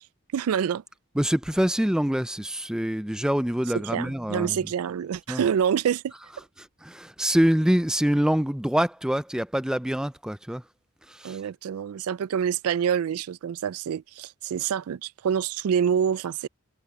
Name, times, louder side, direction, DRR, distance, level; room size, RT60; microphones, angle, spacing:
voice 1, 0.3-0.8 3.7-6.1 11.2-16.5, right 8 dB, 80° right, 0.3 m, -26 dB
voice 2, 1.2-4.6 5.3-5.4 6.6-10.6 11.1-11.4, equal, 5° right, 0.4 m, -25 dB
head